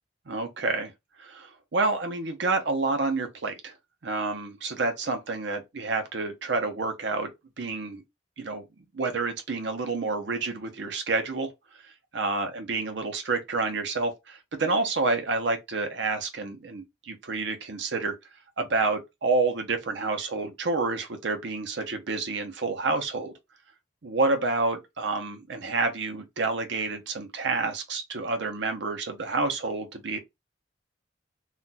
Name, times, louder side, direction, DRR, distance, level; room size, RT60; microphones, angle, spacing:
voice 1, 0.3-0.9 1.2-3.7 4.0-7.3 7.6-8.0 8.4-8.6 8.9-11.5 12.1-18.1 18.6-23.3 24.0-30.2, right 3 dB, 65° right, 0.7 m, -29 dB
2.4 x 2.3 x 4.0 m
head